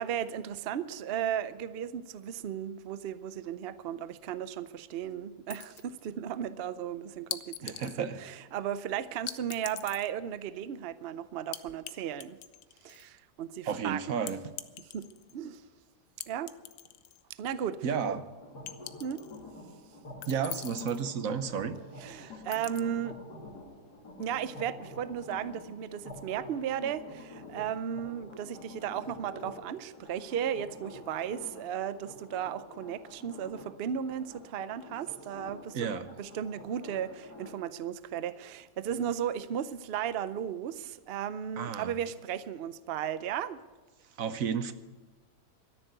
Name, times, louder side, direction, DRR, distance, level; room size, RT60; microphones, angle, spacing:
voice 1, 0.0-12.4 12.8-14.1 14.8-15.1 15.3-15.6 16.3-16.5 17.4-18.1 19.0-19.2 22.0-23.2 24.2-43.6, right 9 dB, 80° right, 14 dB, 0.5 m, -35 dB
sound 1, 5.5-6.1 7.3-8.0 9.3-10.1 11.5-11.9 12.2-13.1 14.3-15.3 16.2-17.2 17.6-17.7 18.7-19.4 20.2-21.0 22.5-22.8, left 12 dB, 85° left, 1.3 m, -42 dB
voice 2, 7.6-8.2 13.7-14.4 17.8-18.2 20.3-22.4 35.7-36.1 41.6-41.9 44.2-44.7, right 7 dB, 60° right, 12 dB, 1.2 m, -32 dB
sound 2, 18.4-37.6, left 2 dB, 70° left, 3.0 m, -48 dB
13.0 x 10.5 x 8.1 m, 1.3 s
omnidirectional pair, 1.8 m